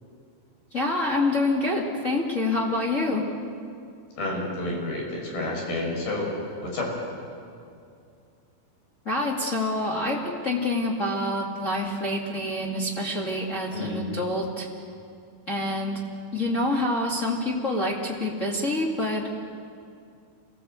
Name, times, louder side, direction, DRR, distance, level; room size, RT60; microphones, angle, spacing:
voice 1, 0.7-3.2 9.0-14.7 15.5-16.0 16.3-19.4, left 2 dB, 30° left, -3 dB, 1.6 m, -26 dB
voice 2, 4.2-6.4 6.6-6.9 13.7-14.0, left 2 dB, 60° left, -1 dB, 7.6 m, -30 dB
27.5 x 19.0 x 8.2 m, 2.4 s
omnidirectional pair, 5.1 m